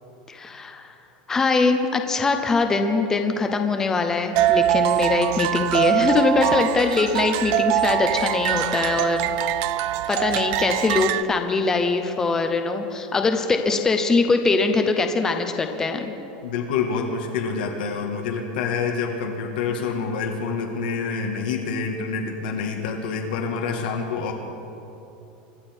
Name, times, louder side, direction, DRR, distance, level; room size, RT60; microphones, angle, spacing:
voice 1, 0.3-0.9 1.3-9.3 10.1-16.1, left 4 dB, 10° left, 5 dB, 0.8 m, -22 dB
sound 1, 4.3-11.2, right 13 dB, 45° right, 0.4 m, -23 dB
voice 2, 16.4-24.3, left 5 dB, 85° left, 1 dB, 1.7 m, -27 dB
25.0 x 11.5 x 4.5 m, 2.9 s
supercardioid pair, 170°, 5 cm